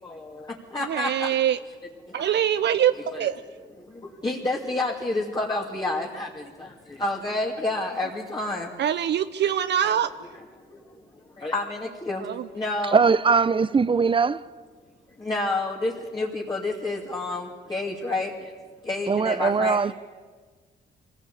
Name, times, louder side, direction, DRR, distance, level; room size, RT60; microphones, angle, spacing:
voice 1, 0.0-1.3 2.1-2.4 3.1-3.3 3.9-8.7 9.8-9.9 10.7-10.9 11.4-12.3 12.5-13.0 15.2-18.5 18.8-19.8, left 2 dB, 20° left, 2.6 m, -29 dB
voice 2, 0.9-1.6 2.1-3.3 8.8-10.1 12.2-12.5, right 10 dB, 60° right, 0.6 m, -24 dB
voice 3, 12.9-14.4 19.1-19.9, right 5 dB, 25° right, 0.7 m, -21 dB
24.0 x 18.0 x 8.5 m
cardioid pair, 90°, 20 cm